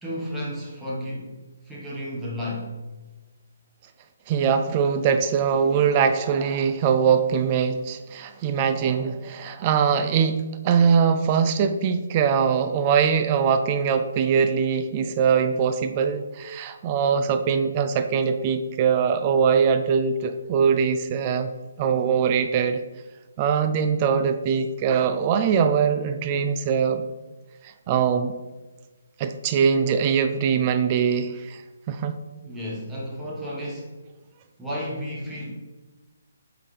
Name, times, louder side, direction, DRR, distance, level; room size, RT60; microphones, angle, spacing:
voice 1, 0.0-2.7 32.4-34.0 34.6-35.5, equal, 5° right, 1.4 m, -33 dB
voice 2, 4.3-21.5 21.8-22.8 23.4-27.0 27.6-28.4 29.2-31.6 31.9-32.2, right 6 dB, 30° right, 0.4 m, -22 dB
8.2 x 4.0 x 3.3 m
figure-of-eight pair, 145°, 0 cm